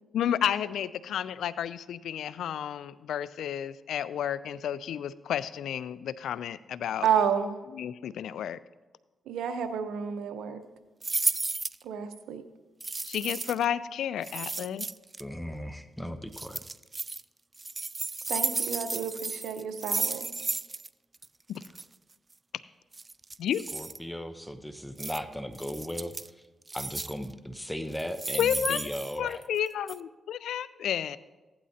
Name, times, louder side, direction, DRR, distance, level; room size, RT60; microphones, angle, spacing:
voice 1, 0.1-7.1 7.7-8.6 13.1-14.9 21.5-21.6 23.4-23.6 28.4-28.8 29.2-31.2, left 9 dB, 85° left, 17 dB, 0.3 m, -31 dB
voice 2, 7.0-7.5 9.3-10.6 11.8-12.4 18.3-20.3, right 7 dB, 90° right, 8 dB, 0.8 m, -30 dB
sound 1, 11.0-11.8 12.8-13.7 14.2-15.2 16.3-17.2 17.6-20.9 21.1-21.3 21.6-21.8 22.9-24.0 25.0-25.2 25.6-26.3 26.7-27.3 27.9-29.6 29.9-30.0, right 3 dB, 30° right, 0.3 m, -33 dB
voice 3, 15.2-16.6 23.7-26.4 26.7-29.4, equal, 5° left, 9 dB, 0.7 m, -37 dB
16.0 x 11.5 x 2.8 m, 1.2 s
cardioid pair, 65°, 0 cm